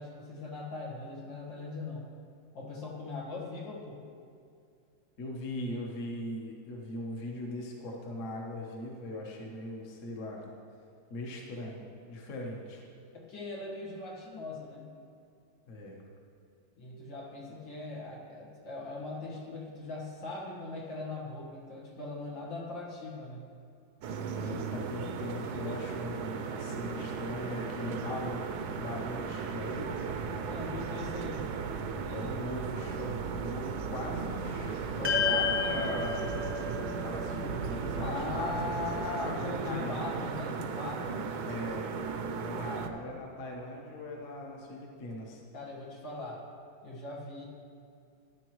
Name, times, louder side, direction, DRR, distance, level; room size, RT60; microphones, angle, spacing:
voice 1, 0.0-2.1 2.5-4.1 13.1-14.9 16.8-23.5 30.4-31.5 38.0-41.3 42.6-43.0 45.5-46.4 46.8-47.4, left 3 dB, 80° left, -3 dB, 2.3 m, -40 dB
voice 2, 5.2-10.4 11.1-11.8 12.1-12.8 15.7-16.0 24.3-28.5 28.7-29.9 32.1-36.2 37.0-38.8 39.0-40.2 41.4-41.8 42.4-45.4, left 1 dB, 45° left, -1 dB, 1.4 m, -40 dB
sound 1, 24.0-42.9, right 5 dB, 70° right, 1.0 m, -36 dB
sound 2, 35.0-39.5, left 5 dB, 10° right, 0.8 m, -33 dB
13.0 x 9.9 x 3.1 m, 2.5 s
omnidirectional pair, 2.0 m